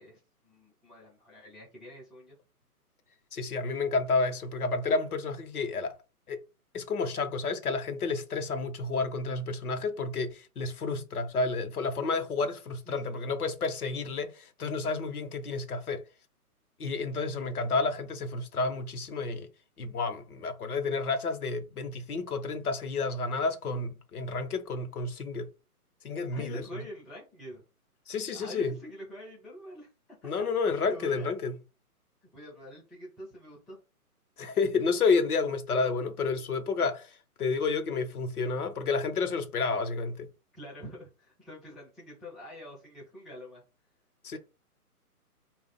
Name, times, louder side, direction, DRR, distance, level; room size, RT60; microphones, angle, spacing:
voice 1, 0.0-2.4 12.9-13.2 26.3-27.6 28.3-29.9 30.2-30.3 30.8-31.3 32.3-33.8 40.5-43.6, equal, ahead, 0.3 m, -46 dB
voice 2, 3.3-6.0 6.3-6.4 6.7-16.0 16.8-19.5 19.8-25.5 26.0-26.6 28.1-28.8 30.2-31.6 34.4-40.3 44.2-44.4, left 4 dB, 70° left, 0.9 m, -30 dB
3.7 x 2.4 x 3.9 m
hypercardioid pair, 155°, 46 cm